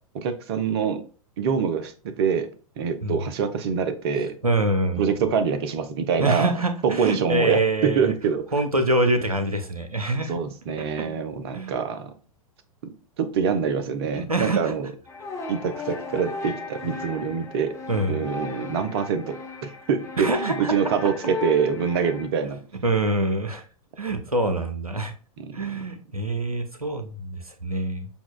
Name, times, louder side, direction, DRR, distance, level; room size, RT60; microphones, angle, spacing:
voice 1, 0.1-1.0 1.4-2.5 2.8-4.3 5.0-6.5 6.8-8.4 10.3-12.1 12.8-12.9 13.2-14.9 15.5-17.7 18.1-22.6 25.4-25.8, right 6 dB, 45° right, 9 dB, 0.7 m, -25 dB
voice 2, 4.4-5.1 6.2-8.1 8.5-10.3 11.0-11.1 11.5-11.8 14.1-14.7 17.9-18.2 20.2-20.7 22.8-23.6 24.0-25.1 25.5-28.1, right 2 dB, 90° right, 8 dB, 0.7 m, -25 dB
sound 1, 15.1-22.3, left 4 dB, 15° left, 0.8 m, -36 dB
6.9 x 2.3 x 2.2 m, 0.39 s
figure-of-eight pair, 100°, 18 cm